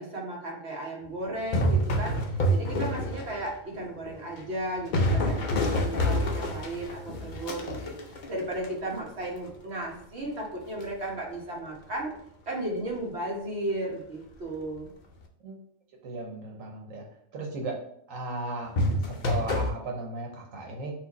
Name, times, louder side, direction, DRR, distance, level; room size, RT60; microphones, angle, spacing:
voice 1, 0.0-12.1 12.5-14.9, right 1 dB, 55° right, -1 dB, 1.3 m, -35 dB
sound 1, 1.4-3.6 4.1-9.1 10.8-11.0 18.7-19.7, equal, 50° left, 0.6 m, -27 dB
voice 2, 16.0-17.0 17.3-17.7 18.1-18.7 19.0-20.9, right 2 dB, 85° right, 0 dB, 1.3 m, -36 dB
4.4 x 2.5 x 4.0 m, 0.68 s
omnidirectional pair, 1.3 m